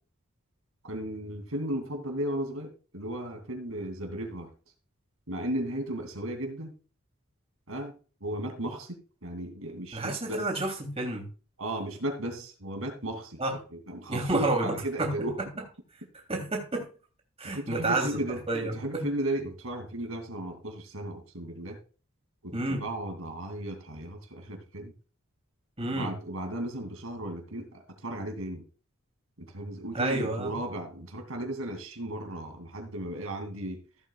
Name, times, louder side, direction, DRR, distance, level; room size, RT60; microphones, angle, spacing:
voice 1, 0.8-4.5 5.3-6.7 7.7-7.9 8.2-10.0 10.3-10.4 11.6-15.4 17.5-18.4 18.7-21.8 22.4-24.9 25.9-28.6 29.4-33.8, right 1 dB, 80° right, 3 dB, 2.7 m, -35 dB
voice 2, 9.9-11.2 13.4-13.5 14.1-15.3 16.3-16.9 17.4-18.1 18.5-19.0 22.5-22.8 25.8-26.1 29.9-30.5, right 2 dB, 30° right, 1 dB, 3.1 m, -30 dB
16.0 x 8.1 x 2.4 m, 0.35 s
head